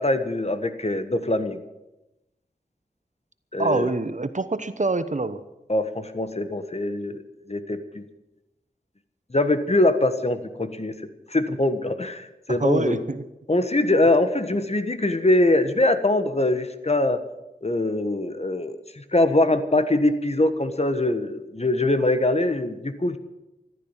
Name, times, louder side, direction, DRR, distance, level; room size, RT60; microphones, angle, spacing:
voice 1, 0.0-1.6 3.5-3.9 5.7-7.2 7.5-8.0 9.3-11.0 11.3-13.0 13.5-17.2 17.6-23.2, left 2 dB, 40° left, 10 dB, 1.4 m, -23 dB
voice 2, 3.6-5.4 12.5-13.2, right 3 dB, 50° right, 12 dB, 1.0 m, -25 dB
14.5 x 12.5 x 7.3 m, 0.96 s
wide cardioid pair, 45°, 17 cm